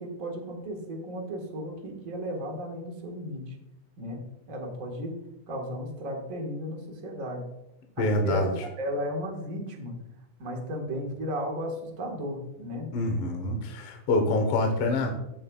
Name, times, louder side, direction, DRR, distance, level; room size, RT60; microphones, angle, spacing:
voice 1, 0.0-3.5 4.0-4.2 4.5-5.1 5.5-7.4 8.0-9.9 10.4-12.9, equal, 35° right, 1 dB, 1.4 m, -34 dB
voice 2, 8.0-8.5 12.9-15.1, left 2 dB, 60° left, 3 dB, 1.7 m, -26 dB
15.0 x 6.7 x 2.3 m, 0.88 s
omnidirectional pair, 3.5 m